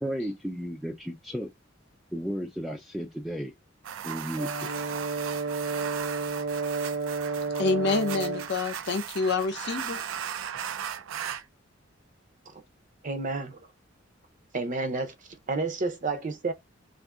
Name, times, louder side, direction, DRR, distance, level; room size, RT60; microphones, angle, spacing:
voice 1, 0.0-1.5 2.1-3.5 4.0-4.7, equal, ahead, 0.3 m, -33 dB
sound 1, 3.8-11.4, right 8 dB, 90° right, 0.4 m, -37 dB
Brass instrument, 4.4-8.5, right 4 dB, 65° right, 0.9 m, -31 dB
voice 2, 7.6-10.0, left 4 dB, 60° left, 0.6 m, -27 dB
voice 3, 13.0-13.6 14.5-15.1 15.5-16.5, right 3 dB, 40° right, 0.6 m, -30 dB
2.6 x 2.5 x 3.5 m
head